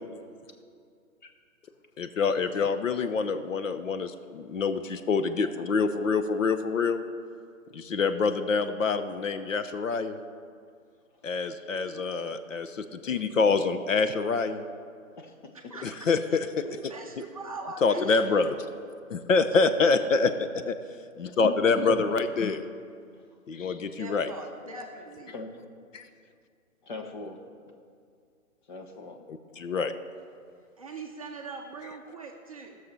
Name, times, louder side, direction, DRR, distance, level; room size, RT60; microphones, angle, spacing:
voice 1, 2.0-7.0 7.7-10.2 11.2-14.6 15.8-16.7 17.8-18.5 19.1-20.8 21.4-22.6 23.5-24.3 25.9-26.0 29.3-29.9, left 4 dB, 65° left, 10 dB, 0.8 m, -26 dB
voice 2, 11.8-12.4 14.8-14.9 15.5-16.4 16.6-18.5 23.9-25.4 30.8-32.8, right 3 dB, 25° right, 1 dB, 0.6 m, -42 dB
voice 3, 21.4-22.1 25.3-25.5 26.8-27.4 28.7-29.2, left 3 dB, 35° left, 4 dB, 1.0 m, -39 dB
14.5 x 6.6 x 5.5 m, 2.2 s
hypercardioid pair, 160°, 42 cm